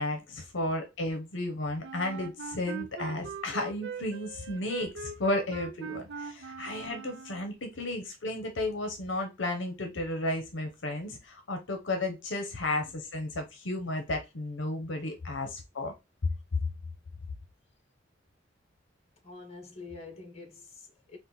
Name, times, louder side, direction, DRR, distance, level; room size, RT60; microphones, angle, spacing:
voice 1, 0.0-15.9, left 2 dB, 70° left, 0.9 m, -33 dB
Wind instrument woodwind instrument, 1.8-7.5, right 6 dB, 65° right, 0.5 m, -41 dB
voice 2, 19.2-21.2, left 3 dB, 35° left, 1.2 m, -46 dB
4.3 x 2.5 x 3.9 m
head